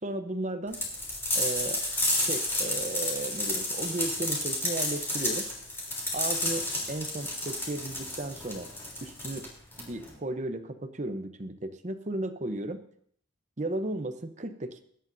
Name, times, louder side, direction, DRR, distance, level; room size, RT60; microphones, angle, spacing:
voice 1, 0.0-0.8 1.3-1.8 2.2-5.5 6.1-8.7 9.0-9.5 9.8-12.8 13.6-14.8, right 2 dB, 35° right, 9 dB, 0.8 m, -35 dB
sound 1, 0.7-10.1, left 1 dB, 10° left, 3.3 m, -31 dB
21.0 x 10.5 x 2.7 m, 0.65 s
head